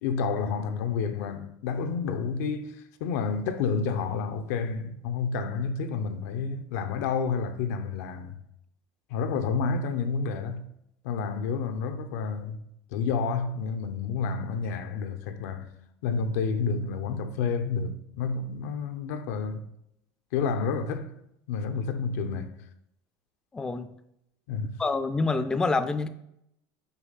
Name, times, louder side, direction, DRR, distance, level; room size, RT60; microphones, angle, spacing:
voice 1, 0.0-8.4 9.1-10.6 11.0-12.6 12.9-15.7 16.0-19.6 20.3-21.1 21.5-22.5 24.5-24.8, left 5 dB, 90° left, 0.9 m, -30 dB
voice 2, 23.5-23.9 24.8-26.1, left 3 dB, 10° left, 0.3 m, -26 dB
6.9 x 5.2 x 5.7 m
cardioid pair, 165°, 8 cm